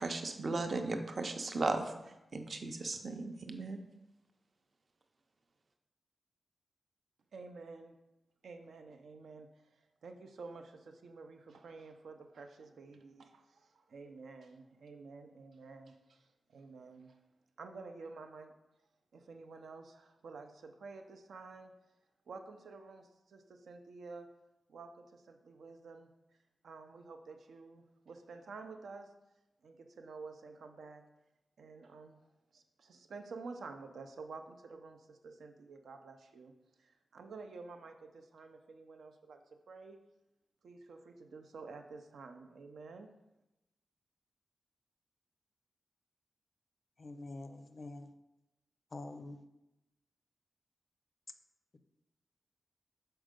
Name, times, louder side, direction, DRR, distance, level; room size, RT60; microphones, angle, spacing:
voice 1, 0.0-1.9 2.3-3.8, right 3 dB, 40° right, 6 dB, 0.6 m, -36 dB
voice 2, 7.3-8.0 8.4-17.2 17.6-18.5 19.1-21.7 22.3-24.3 24.7-26.1 26.6-29.1 29.6-31.0 31.6-32.2 32.5-36.5 36.8-40.0 40.6-43.1, right 4 dB, 85° right, 6 dB, 0.6 m, -50 dB
voice 3, 47.0-48.1 48.9-49.4, left 2 dB, 40° left, 9 dB, 0.4 m, -46 dB
6.2 x 4.5 x 5.1 m, 0.95 s
wide cardioid pair, 170°, 0 cm